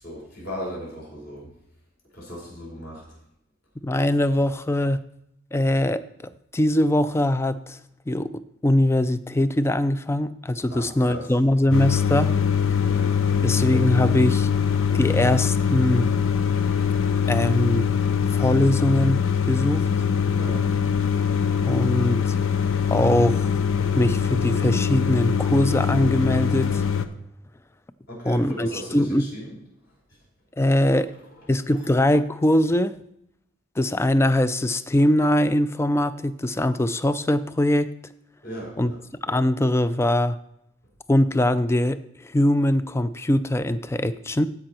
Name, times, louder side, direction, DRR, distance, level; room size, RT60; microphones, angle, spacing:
voice 1, 0.0-1.5 2.1-3.2 10.7-11.3 12.8-13.5 20.3-20.7 28.1-29.5 31.1-31.8 38.4-39.0, equal, 50° left, -3 dB, 4.4 m, -37 dB
voice 2, 3.8-5.0 5.5-7.8 8.1-8.3 8.6-12.3 13.4-14.5 14.9-16.1 17.3-17.9 18.3-19.2 19.5-19.9 21.6-22.4 22.9-23.5 23.9-26.8 28.3-29.3 30.6-31.1 31.5-32.9 33.8-37.9 38.8-38.9 39.2-40.4 41.1-42.0 42.2-44.5, left 1 dB, 15° left, 14 dB, 0.3 m, -22 dB
sound 1, 11.7-27.1, left 7 dB, 80° left, 0.7 m, -22 dB
15.5 x 5.2 x 4.3 m, 0.78 s
head